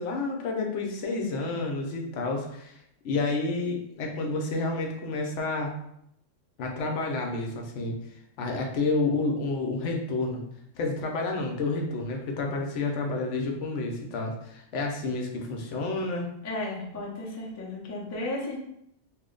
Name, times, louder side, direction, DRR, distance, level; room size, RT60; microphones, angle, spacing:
voice 1, 0.0-2.8 3.0-5.7 6.6-8.0 8.4-10.4 10.8-16.3, left 3 dB, 75° left, 1 dB, 0.9 m, -30 dB
voice 2, 16.4-18.6, left 2 dB, 25° left, -3 dB, 0.3 m, -34 dB
3.0 x 2.1 x 3.7 m, 0.76 s
omnidirectional pair, 1.3 m